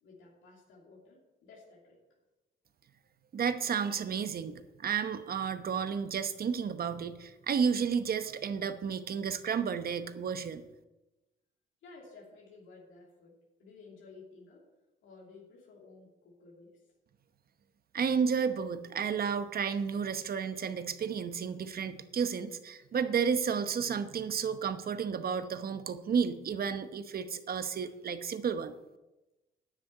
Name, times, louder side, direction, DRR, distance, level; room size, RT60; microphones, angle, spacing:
voice 1, 0.0-2.0 3.8-4.0 11.8-14.7 15.0-16.9 18.4-18.6, left 3 dB, 80° left, -3 dB, 2.9 m, -55 dB
voice 2, 3.3-10.6 17.9-28.7, right 6 dB, 50° right, 10 dB, 1.0 m, -32 dB
10.0 x 6.6 x 9.1 m, 1.0 s
cardioid pair, 90°, 20 cm